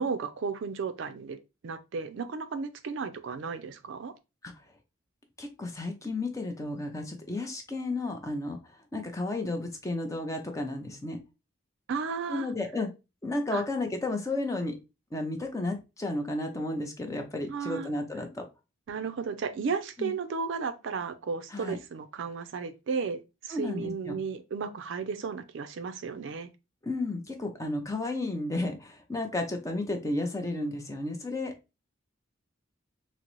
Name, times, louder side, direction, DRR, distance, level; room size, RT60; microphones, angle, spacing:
voice 1, 0.0-1.4 1.6-4.1 11.9-12.5 13.5-13.6 17.5-17.9 18.9-26.5, right 5 dB, 60° right, 0.4 m, -34 dB
voice 2, 5.4-8.6 8.9-11.2 12.3-12.9 13.2-14.8 15.1-18.5 20.0-20.1 21.5-21.8 23.5-24.2 26.8-31.5, left 2 dB, 15° left, 0.5 m, -32 dB
3.8 x 2.0 x 2.9 m
head